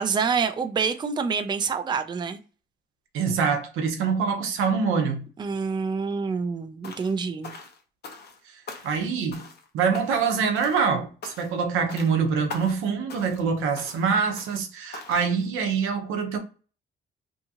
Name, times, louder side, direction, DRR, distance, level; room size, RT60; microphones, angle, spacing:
voice 1, 0.0-2.4 5.4-7.5, right 5 dB, 20° right, 0.4 m, -27 dB
voice 2, 3.1-5.2 8.8-9.5 9.7-16.4, right 5 dB, 90° right, 0.7 m, -25 dB
sound 1, 6.8-7.2 7.4-8.4 8.7-9.1 9.3-9.7 9.9-10.3 10.6-10.9 11.2-11.6 11.9-12.1 12.5-12.8 13.1-13.5 13.8-14.0 14.4-14.7 14.9-15.3, left 4 dB, 55° left, 0.8 m, -42 dB
2.8 x 2.4 x 2.7 m
cardioid pair, 90°, 20 cm